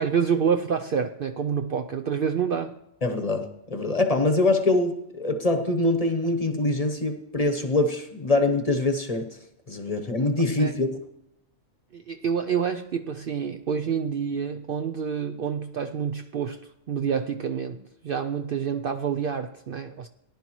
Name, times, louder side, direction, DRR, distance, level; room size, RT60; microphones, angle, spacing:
voice 1, 0.0-2.7 10.6-10.7 11.9-20.1, right 7 dB, 60° right, 6 dB, 0.6 m, -28 dB
voice 2, 3.0-9.3 9.7-11.0, left 2 dB, 30° left, 6 dB, 1.0 m, -24 dB
18.5 x 11.0 x 3.1 m, 0.83 s
omnidirectional pair, 1.3 m